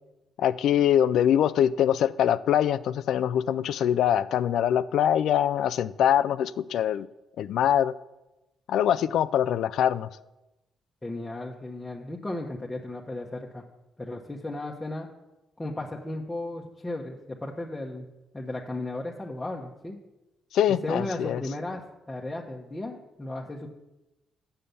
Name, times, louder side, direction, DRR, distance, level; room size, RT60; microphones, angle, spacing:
voice 1, 0.4-7.1 7.4-7.9 8.7-10.1 20.5-21.4, left 10 dB, 75° left, 14 dB, 0.3 m, -23 dB
voice 2, 11.0-13.6 14.0-15.1 15.6-18.0 18.3-20.0 20.8-23.7, left 2 dB, 15° left, -1 dB, 1.1 m, -35 dB
7.7 x 6.8 x 6.9 m, 0.98 s
cardioid pair, 85°, 0 cm